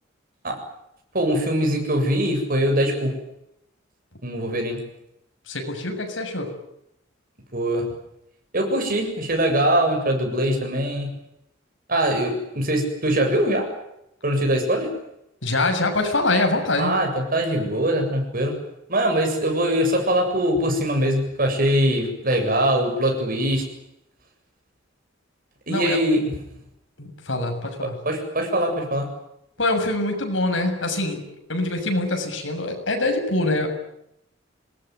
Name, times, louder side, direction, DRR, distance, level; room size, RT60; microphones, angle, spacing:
voice 1, 1.1-3.2 4.2-4.9 7.5-7.9 8.5-11.1 11.9-13.7 14.2-15.0 16.8-18.6 18.9-23.7 25.7-26.4 27.8-29.1, right 1 dB, 50° right, 3 dB, 7.8 m, -22 dB
voice 2, 5.5-6.5 15.4-16.9 25.7-26.0 27.0-28.0 29.6-31.2 31.5-33.7, left 2 dB, 80° left, 4 dB, 7.2 m, -24 dB
26.5 x 20.5 x 9.6 m, 0.81 s
head